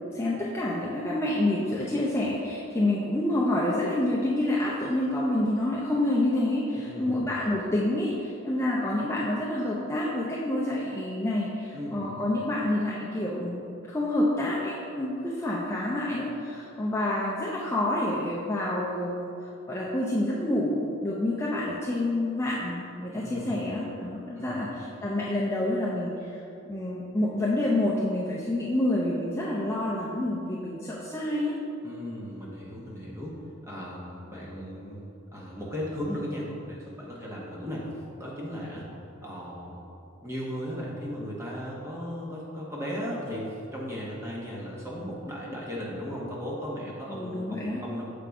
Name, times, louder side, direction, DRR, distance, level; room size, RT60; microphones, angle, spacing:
voice 1, 0.1-13.6 13.9-19.3 19.7-26.3 26.7-31.6 47.1-47.8, left 1 dB, 15° left, -6 dB, 0.5 m, -28 dB
voice 2, 6.8-7.2 11.7-12.2 23.1-23.6 24.4-24.7 31.8-33.4 33.6-35.0 35.3-37.9 38.2-38.9 39.2-39.9 40.2-48.1, equal, 15° right, -5 dB, 1.1 m, -36 dB
6.7 x 3.8 x 4.7 m, 2.7 s
head